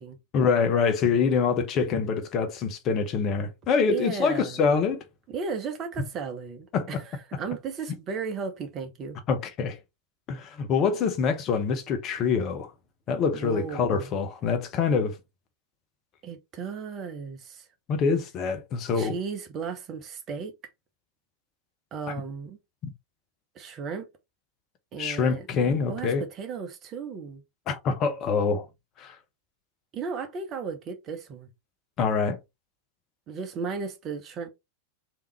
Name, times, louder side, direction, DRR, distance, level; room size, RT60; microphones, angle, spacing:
voice 1, 0.3-5.0 6.7-7.0 9.3-9.8 10.3-12.7 13.1-15.2 17.9-19.1 22.1-22.2 25.0-26.2 27.7-28.7 29.0-29.2 32.0-32.4, left 5 dB, 35° left, 0.7 m, -25 dB
voice 2, 3.9-4.7 5.3-9.2 13.3-14.1 16.2-17.7 19.0-20.5 21.9-22.6 23.5-24.1 24.9-25.5 25.9-27.4 29.9-31.5 33.3-34.5, right 5 dB, 30° right, 0.9 m, -35 dB
3.5 x 2.9 x 3.3 m
figure-of-eight pair, 90°, 0 cm